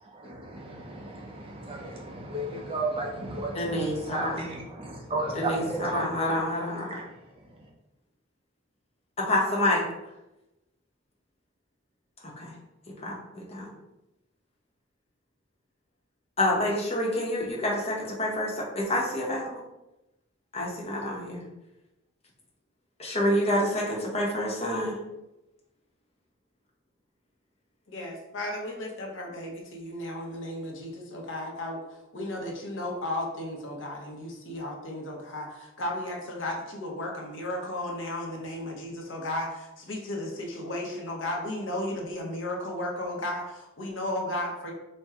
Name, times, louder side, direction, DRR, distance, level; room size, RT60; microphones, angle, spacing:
voice 1, 0.1-6.1 6.9-7.1, right 2 dB, 25° right, -1 dB, 0.5 m, -34 dB
voice 2, 3.5-4.4 5.3-7.0 9.2-9.8 12.4-12.5 13.0-13.7 16.4-19.6 20.5-21.4 23.0-25.0, left 1 dB, 30° left, -3 dB, 0.8 m, -28 dB
voice 3, 27.9-44.7, left 1 dB, 65° left, 0 dB, 0.8 m, -34 dB
4.3 x 2.2 x 3.6 m, 0.94 s
head